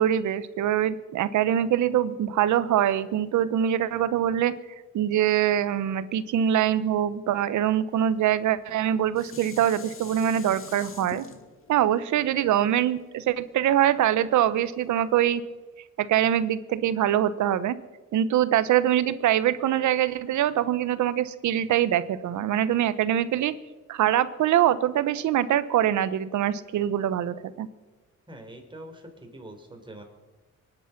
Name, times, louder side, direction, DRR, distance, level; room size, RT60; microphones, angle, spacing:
voice 1, 0.0-4.5 4.9-11.2 11.7-15.4 16.0-17.7 18.1-23.5 23.9-27.7, right 11 dB, 75° right, 15 dB, 1.0 m, -24 dB
Dishes pots and pans, 8.6-13.8 14.4-14.5, left 5 dB, 45° left, 2.2 m, -45 dB
voice 2, 28.3-30.0, right 1 dB, 15° right, 3 dB, 3.9 m, -44 dB
23.5 x 10.0 x 5.9 m, 1.2 s
cardioid pair, 90°, 30 cm